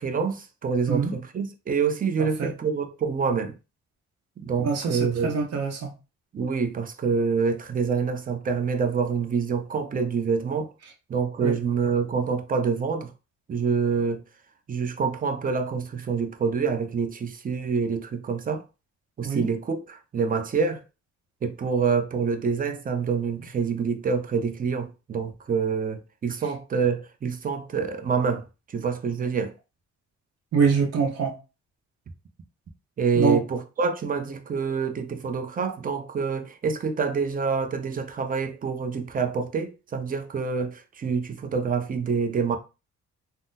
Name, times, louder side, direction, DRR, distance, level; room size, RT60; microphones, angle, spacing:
voice 1, 0.0-3.5 4.4-5.4 6.3-10.7 11.1-13.1 13.5-14.2 14.7-18.6 19.2-20.8 21.4-28.4 28.7-29.5 33.0-42.6, right 5 dB, 30° right, 0.5 m, -26 dB
voice 2, 2.2-2.5 4.6-5.9 11.4-11.6 19.2-19.5 30.5-31.4 33.2-33.4, right 5 dB, 55° right, 0.8 m, -25 dB
3.6 x 2.0 x 2.6 m
cardioid pair, 90°, 30 cm